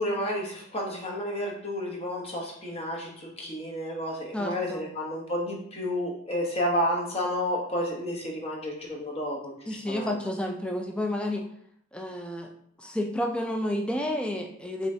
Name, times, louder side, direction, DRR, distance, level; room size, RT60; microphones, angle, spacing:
voice 1, 0.0-9.6 9.9-10.1, equal, 30° left, -1 dB, 1.0 m, -31 dB
voice 2, 4.3-4.8 9.7-11.4 11.9-12.5 12.8-14.9, left 1 dB, 5° left, 2 dB, 0.4 m, -30 dB
5.8 x 3.2 x 2.8 m, 0.67 s
head